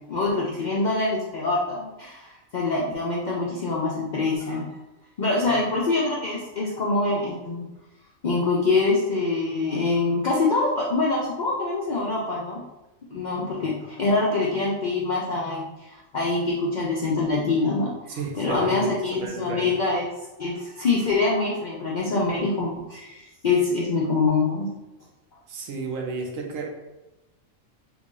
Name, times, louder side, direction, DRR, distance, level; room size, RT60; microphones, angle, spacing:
voice 1, 0.1-4.7 5.2-7.6 8.2-12.6 13.1-20.1 20.4-24.7, left 3 dB, 70° left, -5 dB, 0.4 m, -25 dB
voice 2, 18.2-19.7 25.5-26.7, right 4 dB, 75° right, 1 dB, 1.0 m, -33 dB
3.0 x 2.5 x 3.7 m, 1.0 s
omnidirectional pair, 1.4 m